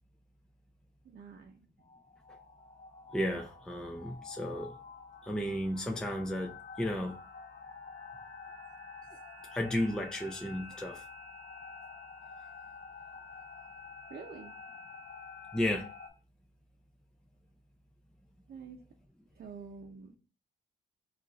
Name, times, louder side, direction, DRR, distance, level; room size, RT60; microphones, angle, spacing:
voice 1, 1.0-1.7 14.1-14.5 18.5-18.8 19.4-20.2, right 5 dB, 55° right, 0.7 m, -47 dB
sound 1, 1.8-16.1, left 4 dB, 45° left, 1.7 m, -49 dB
voice 2, 3.1-4.7 5.2-7.2 9.5-11.0 15.5-15.9, left 1 dB, 5° left, 0.5 m, -33 dB
4.7 x 2.5 x 4.1 m
wide cardioid pair, 145°, 19 cm